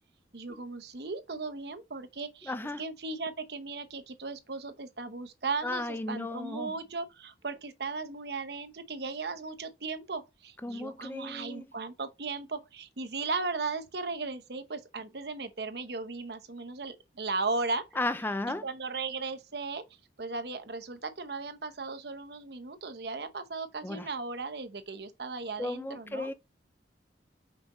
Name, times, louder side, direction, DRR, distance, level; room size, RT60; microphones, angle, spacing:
voice 1, 0.3-17.9 18.6-19.8 20.2-26.3, right 3 dB, 65° right, 0.9 m, -36 dB
voice 2, 2.5-2.8 5.6-6.7 10.6-11.7 18.0-18.6 23.8-24.1 25.6-26.3, left 2 dB, 10° left, 0.5 m, -34 dB
6.1 x 5.1 x 3.1 m
head